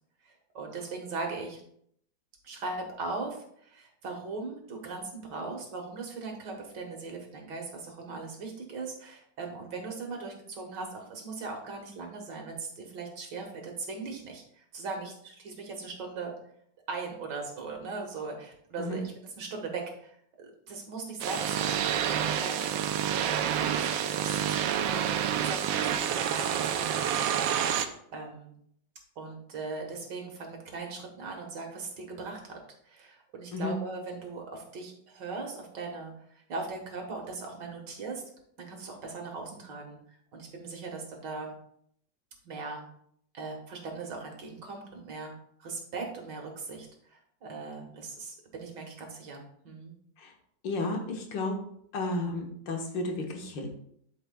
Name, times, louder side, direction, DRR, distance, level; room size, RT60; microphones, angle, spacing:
voice 1, 0.3-1.6 2.4-16.3 16.9-21.8 22.1-25.0 25.3-27.8 28.1-28.5 29.2-32.5 32.9-36.1 36.5-38.2 38.6-41.6 42.4-42.8 43.3-45.3 45.6-49.9, right 3 dB, 70° right, 2 dB, 2.0 m, -39 dB
sound 1, 21.2-27.9, right 9 dB, 90° right, 1.3 m, -28 dB
voice 2, 50.6-51.6 51.9-53.7, left 2 dB, 80° left, 2 dB, 1.8 m, -32 dB
12.0 x 4.8 x 2.2 m, 0.68 s
omnidirectional pair, 2.0 m